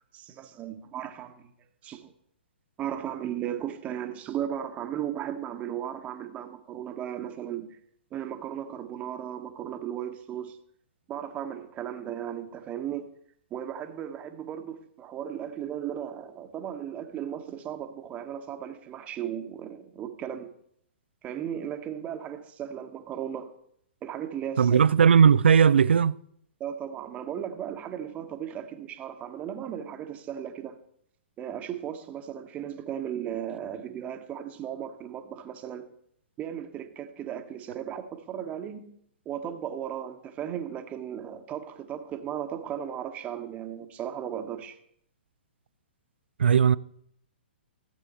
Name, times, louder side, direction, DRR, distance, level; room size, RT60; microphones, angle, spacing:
voice 1, 0.1-1.5 1.8-2.1 2.8-7.8 8.1-10.6 11.1-13.1 13.5-20.5 21.2-23.5 24.0-24.8 26.6-30.8 31.4-35.8 36.4-39.0 39.2-44.8, right 10 dB, 25° right, 1.2 m, -36 dB
voice 2, 24.6-26.1 46.4-46.8, right 7 dB, 75° right, 0.4 m, -18 dB
15.5 x 7.6 x 4.2 m
figure-of-eight pair, 120°, 6 cm